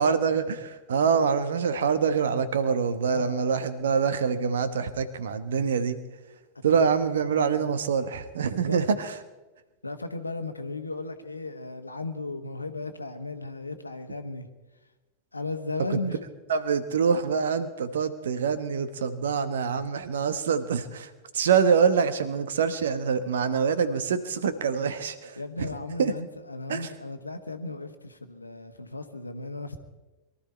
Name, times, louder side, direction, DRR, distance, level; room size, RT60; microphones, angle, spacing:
voice 1, 0.0-6.0 6.6-9.2 15.9-16.0 16.5-25.7 26.0-26.1 26.7-26.9, right 6 dB, 65° right, 1.2 m, -25 dB
voice 2, 3.1-3.5 6.7-6.9 7.3-7.6 8.4-8.8 9.8-14.5 15.3-16.2 25.4-29.8, left 2 dB, 80° left, 1.2 m, -36 dB
22.5 x 13.0 x 4.3 m
figure-of-eight pair, 90°, 0 cm